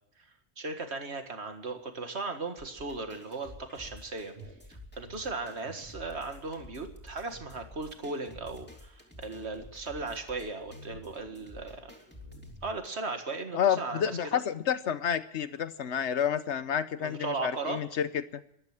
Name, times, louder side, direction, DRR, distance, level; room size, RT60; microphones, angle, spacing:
voice 1, 0.6-4.3 4.7-11.9 12.6-14.4 17.0-17.8, right 3 dB, 75° right, 7 dB, 2.1 m, -37 dB
sound 1, 2.6-12.9, left 1 dB, 10° left, 3.1 m, -51 dB
sound 2, 4.4-6.8 7.1-7.2 7.4-7.7 8.3-8.8 9.1-9.7 10.6-11.0 11.8-11.9 12.2-12.8, left 1 dB, 45° right, 3.6 m, -51 dB
voice 2, 13.5-18.4, left 8 dB, 85° left, 14 dB, 1.2 m, -30 dB
13.5 x 12.0 x 8.9 m, 0.77 s
omnidirectional pair, 1.1 m